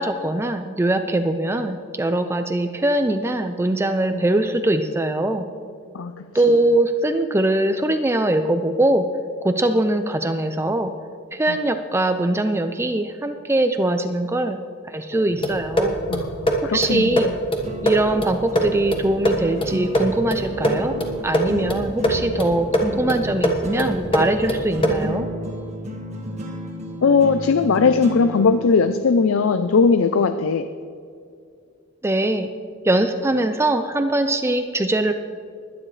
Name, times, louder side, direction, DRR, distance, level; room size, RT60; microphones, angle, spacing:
voice 1, 0.0-5.5 6.3-9.1 9.4-10.9 11.3-14.6 14.8-16.0 16.7-17.3 17.8-20.9 21.2-25.3 32.0-32.5 32.8-35.1, right 1 dB, 15° right, 8 dB, 0.4 m, -22 dB
sound 1, 15.2-29.2, equal, 35° right, 1.7 m, -34 dB
sound 2, 15.4-25.2, right 1 dB, 25° left, 1.4 m, -24 dB
voice 2, 16.1-17.3 27.0-30.7, left 5 dB, 85° left, 10 dB, 0.5 m, -19 dB
21.0 x 10.0 x 3.2 m, 2.3 s
head